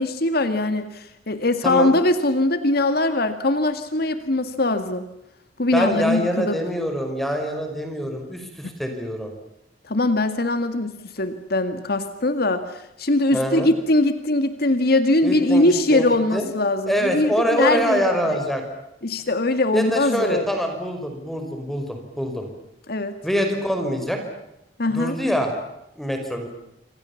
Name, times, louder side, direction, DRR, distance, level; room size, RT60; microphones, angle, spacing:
voice 1, 0.0-5.0 5.6-6.6 9.8-18.4 19.0-20.4 22.9-23.2 24.8-25.2, left 2 dB, 60° left, 9 dB, 1.9 m, -21 dB
voice 2, 5.7-9.3 13.3-13.7 15.2-16.5 16.9-18.6 19.7-22.5 23.2-24.2 24.9-25.5 26.0-26.5, equal, ahead, 5 dB, 5.2 m, -24 dB
27.0 x 26.5 x 7.2 m, 0.86 s
head